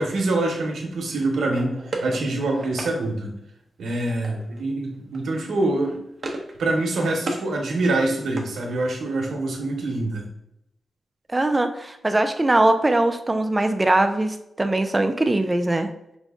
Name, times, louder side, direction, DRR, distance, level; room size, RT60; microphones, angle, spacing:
voice 1, 0.0-3.4 3.8-6.0 6.6-10.3, right 2 dB, 85° right, 1 dB, 0.9 m, -25 dB
sound 1, 1.5-2.9 4.2-4.6 4.9-5.2 5.5-6.6 6.8-7.5 7.9-9.1, right 2 dB, 40° right, 0.8 m, -35 dB
voice 2, 11.3-15.9, right 2 dB, 20° right, 7 dB, 0.3 m, -21 dB
5.0 x 2.2 x 3.5 m, 0.81 s
wide cardioid pair, 125°, 0 cm